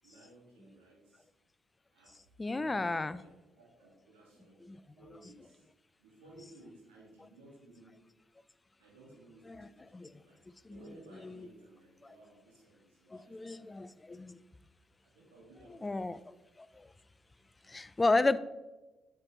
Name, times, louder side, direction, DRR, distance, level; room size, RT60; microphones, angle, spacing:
voice 1, 0.0-1.3 1.9-4.7 4.9-5.7 6.0-8.0 8.8-10.4 10.7-14.1 15.0-16.2, right 2 dB, 85° right, -3 dB, 1.8 m, -58 dB
voice 2, 2.4-3.2 4.6-4.8 9.5-9.7 9.9-10.1 10.6-10.8 11.2-11.5 12.0-12.1 13.1-14.4 15.7-16.2 16.6-16.9 17.7-18.4, left 3 dB, 25° left, 15 dB, 0.4 m, -33 dB
7.5 x 5.8 x 3.0 m, 1.1 s
hypercardioid pair, 45°, 0 cm